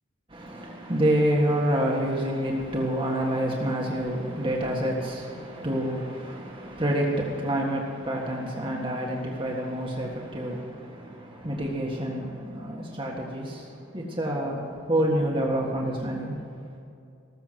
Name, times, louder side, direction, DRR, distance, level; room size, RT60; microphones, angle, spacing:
voice 1, 0.3-16.4, right 1 dB, 25° right, -2 dB, 1.6 m, -28 dB
19.0 x 7.2 x 7.6 m, 2.4 s
head